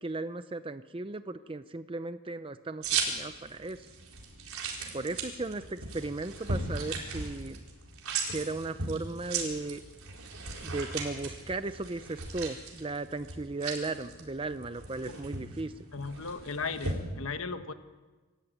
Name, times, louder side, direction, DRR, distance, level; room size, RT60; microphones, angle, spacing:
voice 1, 0.0-3.9 4.9-7.6 8.3-9.8 10.6-15.7, right 3 dB, 25° right, 11 dB, 0.6 m, -36 dB
sound 1, 2.8-17.0, right 4 dB, 75° right, 4.4 m, -37 dB
voice 2, 15.9-17.7, left 4 dB, 70° left, 9 dB, 1.2 m, -36 dB
25.5 x 14.0 x 9.2 m, 1.3 s
head